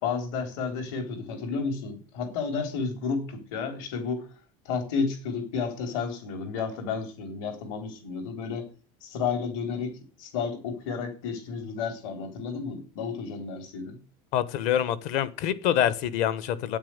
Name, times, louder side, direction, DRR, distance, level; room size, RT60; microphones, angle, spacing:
voice 1, 0.0-4.3 4.7-8.7 9.0-9.9 10.2-14.0, left 5 dB, 60° left, 3.9 m, -31 dB
voice 2, 14.3-16.8, left 10 dB, 45° left, 1.1 m, -26 dB
9.6 x 8.7 x 7.8 m
cardioid pair, 175°, 18 cm